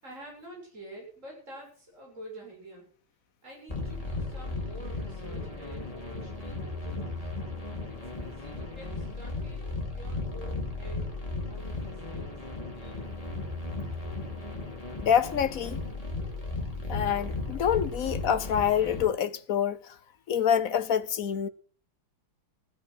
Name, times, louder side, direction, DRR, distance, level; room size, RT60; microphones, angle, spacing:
voice 1, 0.0-2.9 3.4-7.3 7.9-11.1 11.4-12.4, right 1 dB, 35° right, 7.8 m, -48 dB
sound 1, 3.7-19.0, left 3 dB, 15° left, 3.9 m, -36 dB
voice 2, 15.0-15.8 16.9-19.8 20.3-21.5, left 8 dB, 55° left, 1.1 m, -26 dB
15.5 x 13.0 x 6.1 m
omnidirectional pair, 2.2 m